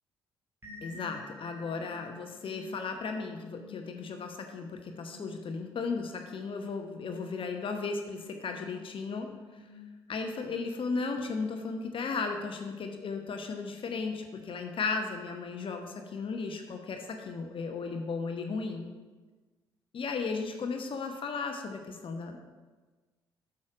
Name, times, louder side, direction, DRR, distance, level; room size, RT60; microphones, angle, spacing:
sound 1, 0.6-12.3, left 4 dB, 20° right, 2.0 m, -52 dB
voice 1, 0.8-9.6 10.1-18.9 19.9-22.4, left 4 dB, 45° left, 4 dB, 1.0 m, -35 dB
8.4 x 6.4 x 4.9 m, 1.3 s
figure-of-eight pair, 45°, 12 cm